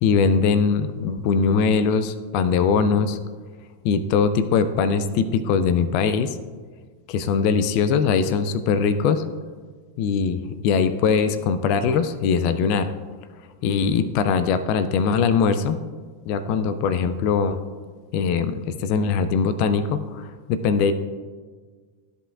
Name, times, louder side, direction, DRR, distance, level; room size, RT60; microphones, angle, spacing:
voice 1, 0.0-3.2 3.8-6.4 7.1-9.2 10.0-12.9 13.6-15.8 16.3-17.6 18.1-20.9, left 5 dB, 45° left, 12 dB, 0.4 m, -21 dB
13.0 x 5.4 x 2.4 m, 1.5 s
figure-of-eight pair, 90°, 0 cm